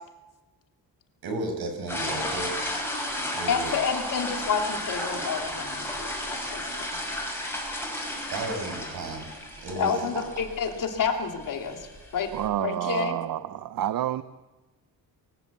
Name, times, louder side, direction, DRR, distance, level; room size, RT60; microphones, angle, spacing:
voice 1, 1.2-2.5 3.3-3.9 8.3-9.3 9.6-10.2, right 2 dB, 85° right, 4 dB, 6.4 m, -33 dB
sound 1, 1.9-12.5, left 1 dB, 5° left, 6.6 m, -33 dB
voice 2, 3.5-6.9 9.8-11.9 12.1-12.3 12.6-13.2, left 6 dB, 60° left, 4 dB, 2.9 m, -29 dB
voice 3, 12.3-14.2, right 12 dB, 65° right, 14 dB, 0.7 m, -29 dB
23.5 x 15.0 x 8.3 m, 1.1 s
wide cardioid pair, 165°, 36 cm